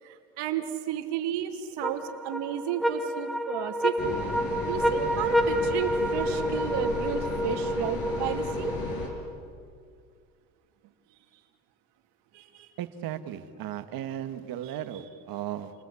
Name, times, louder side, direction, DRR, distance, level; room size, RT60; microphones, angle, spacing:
voice 1, 0.0-4.2 4.7-8.7 11.3-11.4 12.3-12.7 14.6-15.0, right 10 dB, 70° right, 5 dB, 2.9 m, -33 dB
sound 1, 1.8-9.4, equal, ahead, 1.2 m, -29 dB
sound 2, 4.0-9.1, left 3 dB, 55° left, 6.6 m, -35 dB
voice 2, 12.8-15.7, right 11 dB, 50° right, 9 dB, 1.9 m, -36 dB
30.0 x 20.5 x 8.6 m, 2.2 s
cardioid pair, 125°, 43 cm